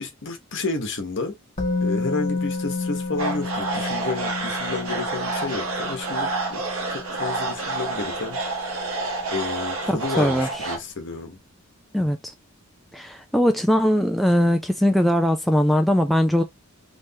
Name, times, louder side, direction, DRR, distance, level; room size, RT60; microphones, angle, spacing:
voice 1, 0.0-1.4 1.8-6.6 6.9-8.7 9.3-11.4, left 3 dB, 60° left, 1.1 m, -31 dB
Musical instrument, 1.6-9.5 9.8-9.9, left 3 dB, 35° left, 1.1 m, -31 dB
sound 1, 3.2-10.8, right 3 dB, 80° right, 1.2 m, -29 dB
voice 2, 9.9-10.7 11.9-12.3 12.9-16.4, equal, ahead, 0.3 m, -20 dB
3.4 x 3.1 x 2.7 m
head